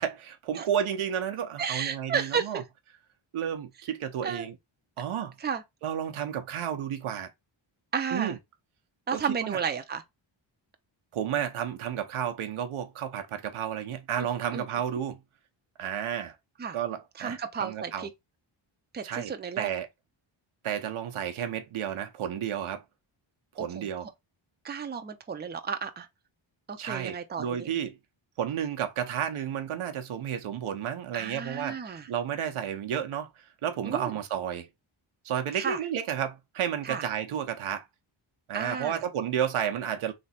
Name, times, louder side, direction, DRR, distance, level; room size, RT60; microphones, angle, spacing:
voice 1, 0.0-2.6 3.3-4.6 5.0-5.3 5.8-7.3 8.1-8.4 9.1-9.6 11.1-15.2 15.8-16.3 16.7-18.1 19.0-19.9 20.6-22.8 23.5-24.1 26.8-28.0 28.4-31.8 32.1-33.3 33.6-34.7 35.2-37.8 38.5-40.1, right 9 dB, 90° right, 0.9 m, -32 dB
voice 2, 1.6-2.6 4.2-4.5 5.4-5.6 7.9-8.4 9.1-10.0 14.2-14.3 14.5-14.7 16.6-16.8 17.2-18.1 18.9-19.7 23.6-23.9 24.6-26.1 26.7-27.7 31.1-32.1 33.8-34.2 35.5-35.8 36.8-37.0 38.5-39.0, right 6 dB, 20° right, 0.6 m, -32 dB
3.3 x 2.9 x 4.2 m
cardioid pair, 100°, 48 cm